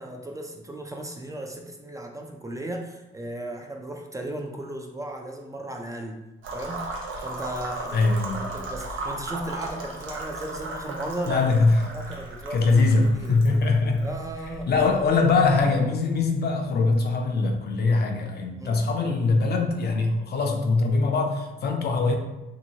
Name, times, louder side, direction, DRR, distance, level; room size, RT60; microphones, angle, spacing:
voice 1, 0.0-6.2 6.5-6.9 7.2-8.0 8.3-11.5 11.9-12.8 13.1-13.3 14.0-14.7 18.6-18.8, right 1 dB, 15° right, 1 dB, 0.4 m, -36 dB
sound 1, 6.4-16.2, right 2 dB, 80° right, 0.6 m, -37 dB
voice 2, 7.9-8.5 11.3-11.9 12.5-14.1 14.7-22.2, left 3 dB, 55° left, 3 dB, 0.5 m, -22 dB
2.8 x 2.6 x 2.8 m, 1.0 s
cardioid pair, 90°, 20 cm